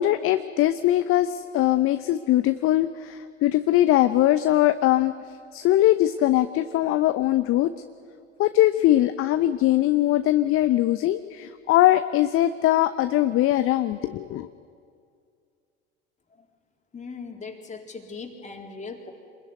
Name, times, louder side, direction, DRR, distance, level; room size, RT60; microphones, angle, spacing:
voice 1, 0.0-5.1 5.5-7.7 8.4-14.5, left 14 dB, 40° left, 11 dB, 0.9 m, -21 dB
voice 2, 16.9-19.1, left 4 dB, 20° left, 2 dB, 3.9 m, -39 dB
26.5 x 21.0 x 9.6 m, 2.3 s
figure-of-eight pair, 70°, 33 cm